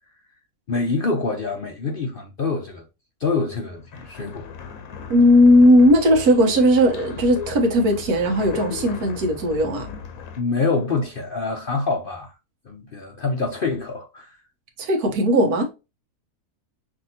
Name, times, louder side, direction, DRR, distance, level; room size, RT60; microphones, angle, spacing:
voice 1, 0.7-2.8 3.2-4.5 10.4-12.3 12.7-14.4, left 4 dB, 50° left, 0.7 m, -25 dB
sound 1, 3.5-10.4, left 6 dB, 70° left, 1.2 m, -36 dB
voice 2, 5.1-9.9 14.8-15.7, equal, 75° right, 1.5 m, -17 dB
6.0 x 2.7 x 2.8 m
omnidirectional pair, 1.6 m